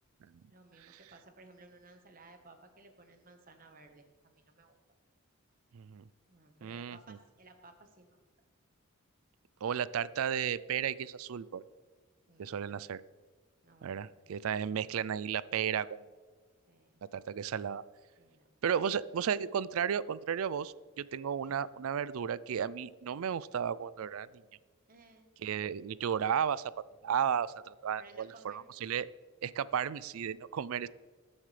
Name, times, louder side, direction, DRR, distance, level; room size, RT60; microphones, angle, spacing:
voice 1, 0.5-4.8 6.3-8.2 12.3-12.8 13.6-14.2 14.7-15.0 16.7-17.0 18.2-18.5 21.4-21.5 24.9-25.3 28.0-28.7, right 2 dB, 40° right, 5 dB, 1.2 m, -58 dB
voice 2, 5.7-6.0 6.6-7.0 9.6-11.6 12.4-13.0 13.8-16.0 17.1-17.8 18.6-24.3 25.4-26.7 27.0-29.1 29.4-30.9, right 8 dB, 70° right, 18 dB, 0.4 m, -33 dB
19.0 x 7.2 x 3.3 m, 1.4 s
head